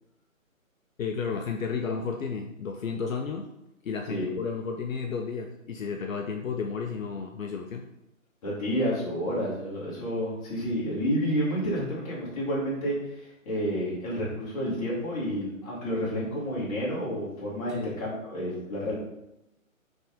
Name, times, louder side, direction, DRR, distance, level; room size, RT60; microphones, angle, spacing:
voice 1, 1.0-3.5 3.8-7.8 17.7-18.0, left 5 dB, 70° left, 3 dB, 0.6 m, -32 dB
voice 2, 8.4-13.0 13.4-18.9, equal, 25° left, -6 dB, 1.5 m, -30 dB
4.1 x 3.5 x 3.5 m, 0.88 s
figure-of-eight pair, 145°, 41 cm